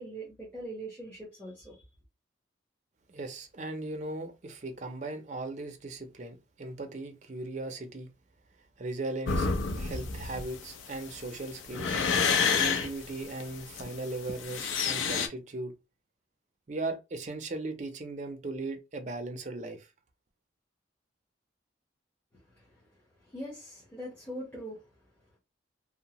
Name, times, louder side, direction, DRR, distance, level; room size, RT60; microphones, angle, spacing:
voice 1, 0.0-1.8 22.3-24.9, right 1 dB, 10° left, 0.9 m, -42 dB
voice 2, 3.1-8.1 8.8-9.5 9.8-12.0 12.5-15.7 16.7-19.9, right 2 dB, 40° right, 0.5 m, -38 dB
sound 1, 9.3-15.3, left 5 dB, 85° left, 0.5 m, -29 dB
2.7 x 2.0 x 2.9 m
head